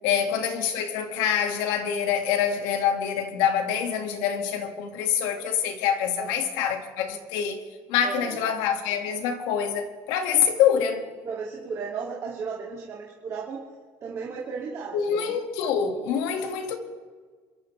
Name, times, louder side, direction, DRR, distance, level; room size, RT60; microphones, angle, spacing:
voice 1, 0.0-7.6 7.9-11.0 14.9-16.8, left 8 dB, 90° left, 2.1 m, -25 dB
voice 2, 8.0-8.4 11.2-13.6 14.0-15.3, right 5 dB, 40° right, 2.6 m, -35 dB
27.5 x 14.0 x 3.4 m
cardioid pair, 160°, 8 cm